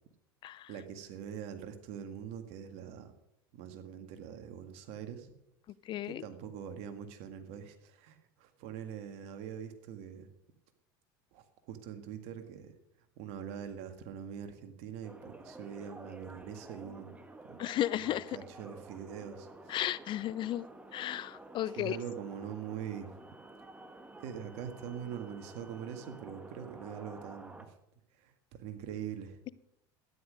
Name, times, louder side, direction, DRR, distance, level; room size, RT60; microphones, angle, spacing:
voice 1, 0.7-3.1 3.5-5.3 6.1-10.3 11.3-12.7 13.2-17.2 17.5-17.6 17.9-19.8 21.8-23.1 24.2-27.7 28.1-29.4, right 8 dB, 65° right, 8 dB, 1.8 m, -43 dB
voice 2, 5.8-6.2 17.6-18.4 19.7-20.7 20.9-22.0, left 13 dB, 45° left, 19 dB, 0.5 m, -34 dB
sound 1, 15.0-27.7, right 2 dB, 10° right, 1.5 m, -51 dB
12.5 x 10.5 x 5.1 m, 0.80 s
hypercardioid pair, 95°, 12 cm